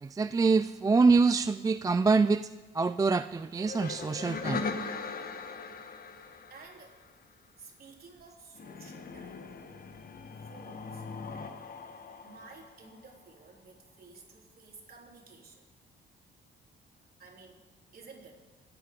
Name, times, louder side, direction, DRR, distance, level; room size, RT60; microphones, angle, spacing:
voice 1, 0.0-2.5 2.7-4.7, right 4 dB, 20° right, 12 dB, 0.3 m, -25 dB
sound 1, 3.6-7.2 8.6-13.2, left 4 dB, 45° left, 1.3 m, -40 dB
voice 2, 6.1-7.0 7.6-9.4 10.5-11.5 12.2-15.7 17.2-17.6 17.9-18.5, right 4 dB, 50° right, 0 dB, 3.7 m, -53 dB
25.0 x 9.2 x 5.2 m, 1.3 s
cardioid pair, 90°, 20 cm